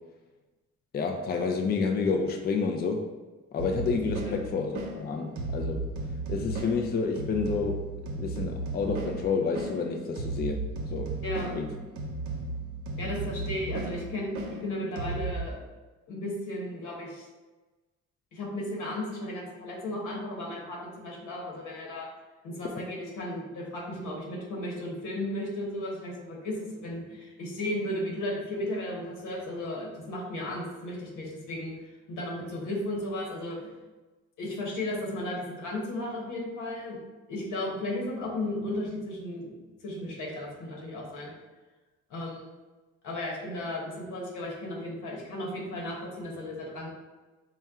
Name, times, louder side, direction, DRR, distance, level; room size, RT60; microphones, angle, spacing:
voice 1, 0.9-3.1 3.5-5.9 6.3-7.9 8.2-10.6 10.9-11.1 11.6-11.7, left 4 dB, 35° left, 3 dB, 0.4 m, -29 dB
sound 1, 3.6-15.4, right 2 dB, 70° right, 0.7 m, -35 dB
voice 2, 11.2-11.5 13.0-15.6 16.1-17.3 18.3-22.1 22.4-33.7 34.4-37.0 37.3-39.5 39.8-41.3 42.1-42.5 43.0-46.9, left 1 dB, 85° left, -2 dB, 1.2 m, -35 dB
4.3 x 2.2 x 3.6 m, 1.2 s
cardioid pair, 90°, 30 cm